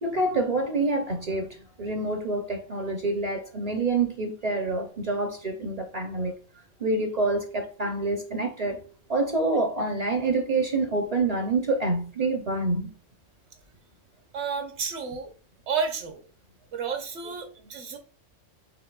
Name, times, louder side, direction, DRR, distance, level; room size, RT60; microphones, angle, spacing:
voice 1, 0.0-1.5 1.8-6.3 6.8-8.8 9.1-12.9, right 2 dB, 45° right, 0.6 m, -27 dB
voice 2, 14.3-15.3 15.7-16.3 16.7-18.0, right 5 dB, 65° right, 1.1 m, -31 dB
5.1 x 3.7 x 2.2 m
omnidirectional pair, 1.3 m